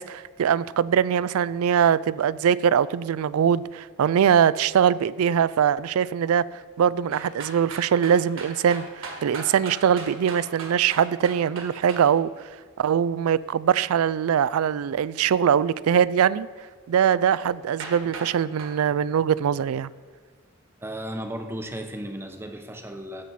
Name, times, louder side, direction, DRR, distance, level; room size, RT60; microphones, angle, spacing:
voice 1, 0.0-12.3 12.8-16.5 16.9-19.9, right 8 dB, 85° right, 0.3 m, -22 dB
sound 1, 7.1-12.0 17.4-17.5 17.8-18.3 18.6-18.7, right 3 dB, 65° right, 1.9 m, -37 dB
voice 2, 20.8-23.2, right 1 dB, 10° right, 0.8 m, -35 dB
15.0 x 7.4 x 4.2 m
head